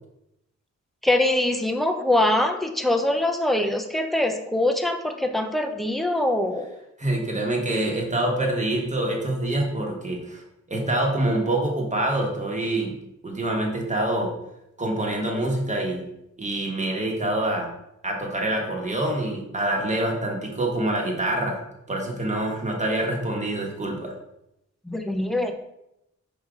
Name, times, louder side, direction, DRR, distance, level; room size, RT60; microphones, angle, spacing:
voice 1, 1.0-6.7 24.9-25.5, left 1 dB, ahead, 5 dB, 0.6 m, -23 dB
voice 2, 7.0-10.4 10.7-12.9 13.2-14.3 14.8-16.0 16.4-17.7 18.0-21.6 21.9-24.1, right 1 dB, 25° right, 0 dB, 1.3 m, -26 dB
5.6 x 3.9 x 4.9 m, 0.85 s
wide cardioid pair, 145°, 29 cm